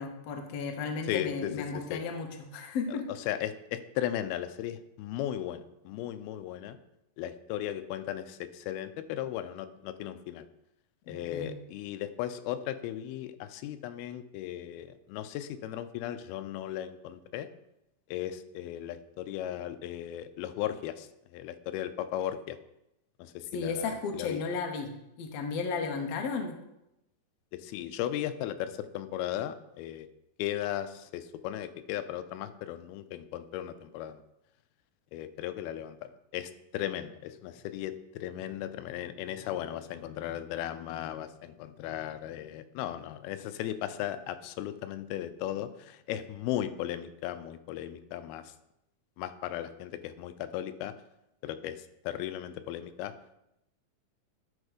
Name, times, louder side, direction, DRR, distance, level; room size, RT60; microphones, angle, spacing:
voice 1, 0.0-3.0 11.1-11.5 23.5-24.9 25.2-26.5, left 5 dB, 70° left, 4 dB, 1.5 m, -34 dB
voice 2, 1.0-2.0 2.9-3.0 3.3-6.8 7.2-10.5 11.1-17.5 18.1-22.6 23.2-24.4 27.5-30.1 30.4-34.2 35.1-48.5 49.2-50.9 51.4-53.1, left 12 dB, 90° left, 11 dB, 2.5 m, -36 dB
11.5 x 4.4 x 5.0 m, 0.87 s
omnidirectional pair, 4.3 m